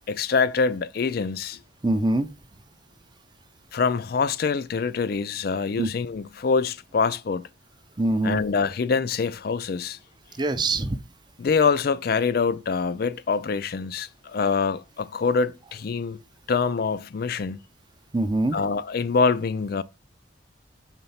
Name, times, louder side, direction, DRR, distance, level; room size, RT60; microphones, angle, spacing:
voice 1, 0.1-1.6 3.7-7.5 8.2-10.0 11.4-16.2 16.5-17.6 18.5-19.8, left 5 dB, 55° left, 0.4 m, -25 dB
voice 2, 1.8-2.3 5.8-5.9 8.0-8.4 10.4-11.0 18.1-18.6, right 2 dB, 25° right, 0.5 m, -23 dB
4.5 x 3.8 x 5.5 m
head